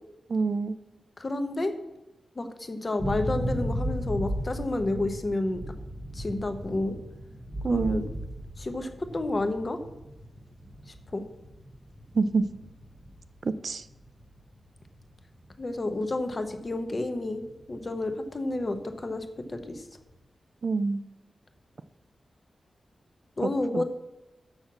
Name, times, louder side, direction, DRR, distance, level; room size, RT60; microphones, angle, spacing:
voice 1, 0.3-0.7 7.6-8.1 12.1-12.4 13.4-13.8 20.6-21.0 23.4-23.8, right 4 dB, 45° right, 13 dB, 0.3 m, -26 dB
voice 2, 1.2-1.7 2.4-5.6 6.1-6.9 7.7-8.1 8.6-9.8 10.9-11.2 15.6-19.8 23.4-23.8, left 2 dB, 30° left, 8 dB, 0.8 m, -30 dB
sound 1, 3.0-19.2 19.4-19.8, equal, 5° right, 1.0 m, -37 dB
6.5 x 5.8 x 7.2 m, 1.0 s
wide cardioid pair, 155°, 0 cm